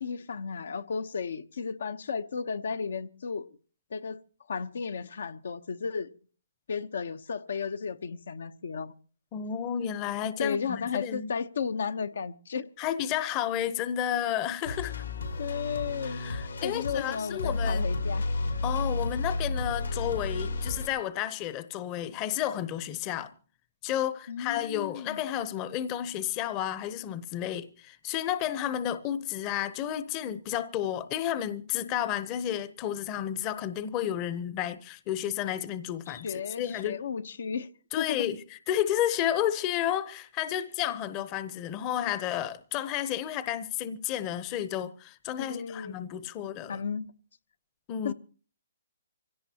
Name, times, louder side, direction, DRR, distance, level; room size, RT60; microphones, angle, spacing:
voice 1, 0.0-3.6 3.9-4.2 4.5-6.1 6.7-8.9 10.4-12.7 15.4-16.2 16.6-18.3 24.3-25.2 36.1-37.7 38.0-38.3 45.4-46.0 46.7-47.1 48.0-48.1, left 6 dB, 70° left, 0.9 m, -34 dB
voice 2, 9.3-11.3 12.8-15.0 16.1-17.8 18.6-23.3 23.8-37.0 37.9-38.4 38.7-46.8 47.9-48.1, left 11 dB, 25° left, 0.8 m, -31 dB
sound 1, 14.6-20.9, left 2 dB, 85° left, 4.6 m, -32 dB
24.5 x 17.0 x 2.9 m
hypercardioid pair, 155°, 0 cm